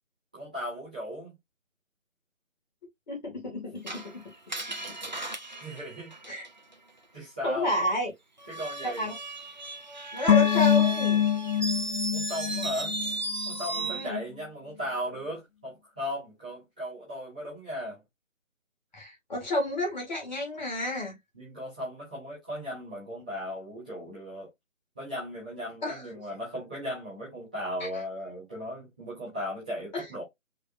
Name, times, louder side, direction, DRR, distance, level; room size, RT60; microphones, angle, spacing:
voice 1, 0.3-1.4 5.6-6.1 7.1-7.7 8.5-9.1 12.1-13.0 13.4-18.0 21.3-24.5 24.9-30.2, equal, 5° right, 0.8 m, -37 dB
voice 2, 3.1-4.2 6.3-6.5 7.4-8.1 8.8-9.1 10.1-11.2 13.8-14.2 18.9-21.2 25.8-26.0 27.8-28.0 29.9-30.2, left 1 dB, 35° left, 2.3 m, -31 dB
Screech, 3.9-6.7 8.4-14.1, right 2 dB, 35° right, 0.5 m, -35 dB
sound 1, 10.3-13.6 13.8-13.9, left 9 dB, 85° left, 1.0 m, -25 dB
5.2 x 3.4 x 2.7 m
figure-of-eight pair, 160°, 39 cm